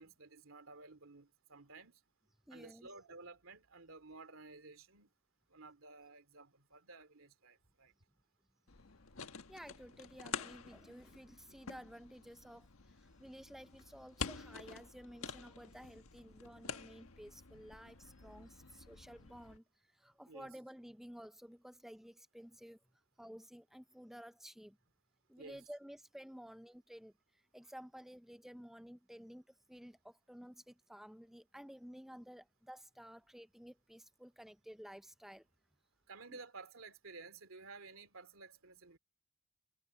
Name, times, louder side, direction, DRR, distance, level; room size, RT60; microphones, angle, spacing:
voice 1, 0.0-2.0 2.5-5.1 5.5-7.9 20.3-20.5 25.4-25.6 36.1-39.0, right 3 dB, 75° right, 2.6 m, -54 dB
voice 2, 2.5-2.9 9.5-19.6 19.9-22.8 23.2-24.8 25.3-27.1 27.5-35.4 36.3-36.4, equal, ahead, 0.5 m, -53 dB
sound 1, 8.7-19.6, left 5 dB, 85° left, 1.4 m, -48 dB
head